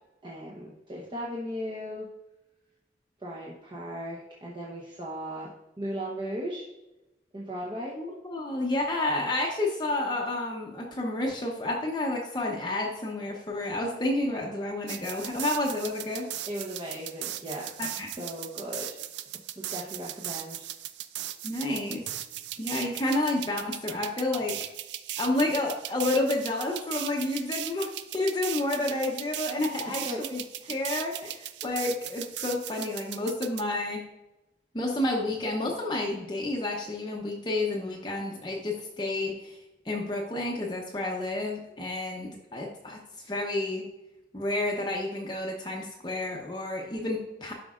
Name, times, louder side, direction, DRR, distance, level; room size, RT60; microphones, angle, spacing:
voice 1, 0.2-2.1 3.2-5.5 5.8-6.7 7.3-7.9 16.4-17.7 18.2-19.0 19.6-20.7 30.0-30.2 30.6-30.8, equal, 30° right, -4 dB, 0.9 m, -37 dB
voice 2, 8.0-16.3 17.8-18.1 21.4-22.1 22.6-24.6 25.2-30.4 30.7-34.0 34.7-39.6 39.8-43.0 43.3-43.9 44.3-47.5, left 2 dB, 25° left, -1 dB, 0.8 m, -30 dB
sound 1, 14.9-33.6, right 12 dB, 85° right, 0.4 m, -38 dB
12.0 x 5.1 x 2.5 m, 0.97 s
head